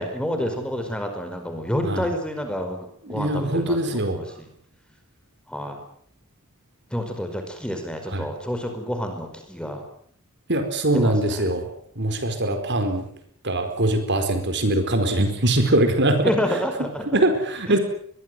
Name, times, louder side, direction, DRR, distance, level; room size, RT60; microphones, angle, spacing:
voice 1, 0.0-4.5 5.5-5.8 6.9-9.8 10.9-11.4 16.2-17.0 17.7-17.8, equal, 5° left, 5 dB, 5.1 m, -29 dB
voice 2, 3.1-4.2 8.1-8.3 10.5-11.7 12.0-13.1 13.4-16.3 17.1-17.8, right 1 dB, 55° right, 7 dB, 4.6 m, -22 dB
23.0 x 22.5 x 7.9 m, 0.63 s
head